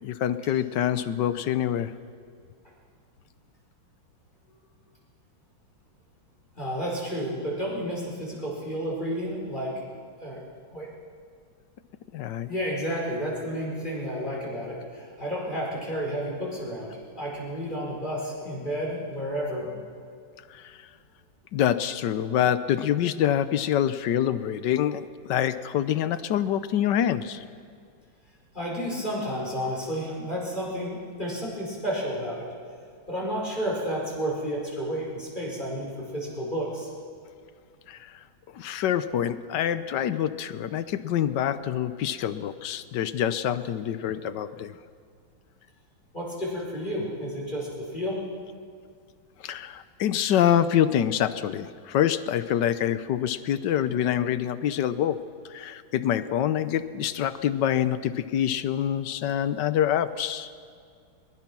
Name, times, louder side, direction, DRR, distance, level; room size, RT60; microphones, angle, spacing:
voice 1, 0.0-1.9 12.1-12.5 20.5-20.7 21.5-27.4 37.9-38.0 38.5-44.7 49.4-55.2 55.5-60.5, left 10 dB, 65° left, 13 dB, 1.3 m, -26 dB
voice 2, 6.6-9.7 10.2-10.4 10.7-10.9 12.5-19.8 28.5-32.5 33.1-36.9 46.1-48.2, equal, 20° left, -4 dB, 5.1 m, -31 dB
22.0 x 21.0 x 6.1 m, 2.2 s
omnidirectional pair, 2.2 m